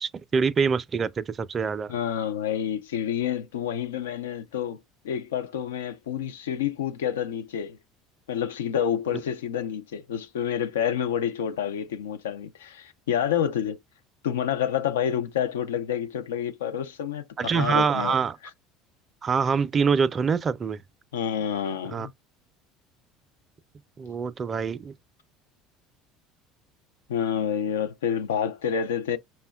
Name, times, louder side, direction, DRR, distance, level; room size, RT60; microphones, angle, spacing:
voice 1, 0.0-1.9 17.4-18.4 19.2-20.8 21.9-22.1 24.0-24.9, right 5 dB, 35° right, 0.4 m, -25 dB
voice 2, 1.9-4.8 5.0-7.8 8.3-13.8 14.2-18.1 21.1-22.1 27.1-29.2, left 9 dB, 90° left, 0.3 m, -28 dB
5.3 x 2.1 x 2.2 m
hypercardioid pair, 80°, 0 cm